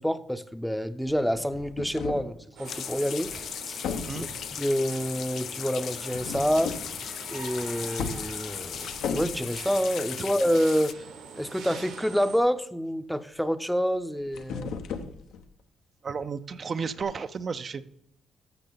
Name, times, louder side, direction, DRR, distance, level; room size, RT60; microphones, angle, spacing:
voice 1, 0.0-3.3 3.7-3.8 4.2-4.3 4.6-6.7 7.3-11.0 11.4-14.7, equal, ahead, 12 dB, 0.6 m, -27 dB
sound 1, 1.1-2.3 3.2-3.5 3.8-4.5 6.1-6.9 7.3-7.5 8.0-9.5 13.9-15.5 17.0-17.1, left 6 dB, 85° left, 1.0 m, -36 dB
sound 2, 2.6-10.9, left 9 dB, 65° left, 0.3 m, -37 dB
sound 3, 2.6-12.4, right 5 dB, 85° right, 2.0 m, -45 dB
voice 2, 16.0-17.8, right 5 dB, 45° right, 11 dB, 0.5 m, -33 dB
13.5 x 6.6 x 4.0 m, 0.76 s
cardioid pair, 90°, 0 cm